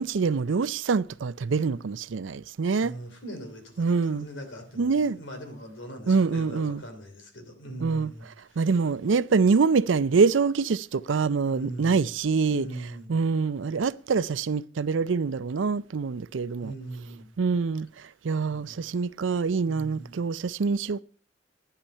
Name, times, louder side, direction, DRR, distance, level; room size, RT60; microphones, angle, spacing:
voice 1, 0.0-2.9 3.8-4.3 4.8-5.2 6.1-6.8 7.8-8.1 8.6-12.7 13.1-16.7 17.4-17.9 18.2-21.0, right 5 dB, 85° right, 0.5 m, -25 dB
voice 2, 2.8-8.7 11.4-12.1 12.5-13.1 16.6-17.3 18.5-18.9 19.6-20.2, right 1 dB, 85° left, 3.1 m, -41 dB
12.0 x 9.9 x 5.5 m
head